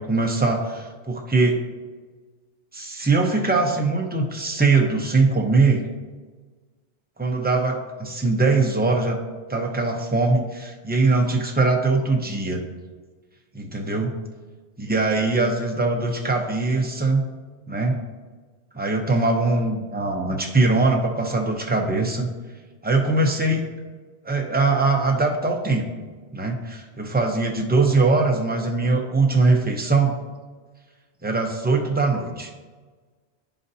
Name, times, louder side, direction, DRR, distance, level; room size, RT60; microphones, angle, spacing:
voice 1, 0.0-1.6 2.7-5.8 7.2-9.2 9.5-12.6 13.5-14.1 14.8-17.2 17.7-18.0 18.7-22.3 22.8-23.6 24.2-25.9 26.3-30.2 31.2-32.5, right 3 dB, 10° right, 1 dB, 0.5 m, -21 dB
11.5 x 3.8 x 2.7 m, 1.4 s
omnidirectional pair, 1.2 m